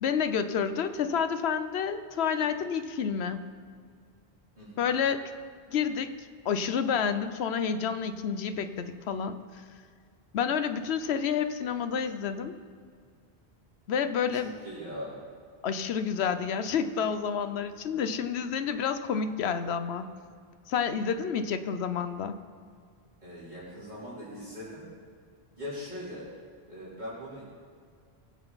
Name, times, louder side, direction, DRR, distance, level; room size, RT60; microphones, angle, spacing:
voice 1, 0.0-3.5 4.8-5.2 5.7-6.1 6.4-9.4 10.3-12.5 13.9-14.5 15.6-20.1 20.7-22.4, left 7 dB, 90° left, 10 dB, 1.0 m, -29 dB
voice 2, 14.3-15.2 23.2-24.8 25.6-26.2 26.7-27.4, left 1 dB, 45° right, -12 dB, 3.9 m, -40 dB
20.0 x 7.8 x 4.0 m, 2.1 s
omnidirectional pair, 1.1 m